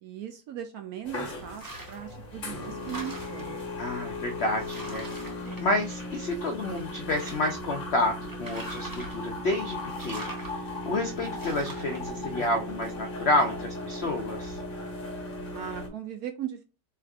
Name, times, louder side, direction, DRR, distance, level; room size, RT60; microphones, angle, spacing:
voice 1, 0.0-3.6 15.5-16.7, right 10 dB, 70° right, 7 dB, 0.9 m, -38 dB
sound 1, 1.0-15.9, left 1 dB, 40° left, 0.9 m, -37 dB
sound 2, 1.5-2.1 2.5-3.6 4.2-4.3 4.6-6.3 6.7-7.6 8.3-9.3 9.9-10.5 11.3-12.0, right 2 dB, 20° right, 0.6 m, -42 dB
voice 2, 3.8-5.1 5.6-10.2 10.6-14.6, left 1 dB, 75° left, 3 dB, 0.5 m, -29 dB
3.5 x 2.4 x 4.5 m, 0.33 s
omnidirectional pair, 1.9 m